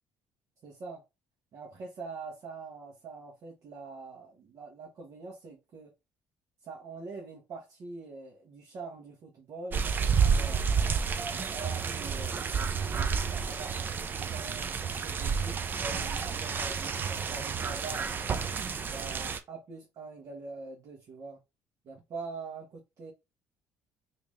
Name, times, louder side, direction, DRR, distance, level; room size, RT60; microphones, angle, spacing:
voice 1, 0.6-1.0 1.5-5.9 6.6-9.9 10.2-10.6 11.5-18.1 18.9-21.4 21.9-23.1, right 4 dB, 50° right, 1.2 m, -44 dB
sound 1, 9.7-19.4, right 6 dB, 30° right, 0.5 m, -30 dB
3.5 x 2.8 x 3.1 m
cardioid pair, 120°, 6 cm